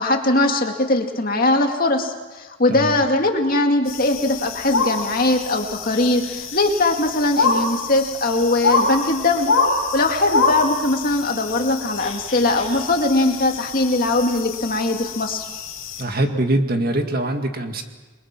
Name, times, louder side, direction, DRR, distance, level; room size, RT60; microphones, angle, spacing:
voice 1, 0.0-9.5 9.9-15.5, left 2 dB, 40° left, 3 dB, 2.2 m, -20 dB
voice 2, 2.7-3.0 16.0-17.8, right 1 dB, 40° right, 5 dB, 2.1 m, -23 dB
sound 1, 3.9-16.0, left 3 dB, 60° left, 7.9 m, -26 dB
29.5 x 22.5 x 6.1 m, 1.2 s
head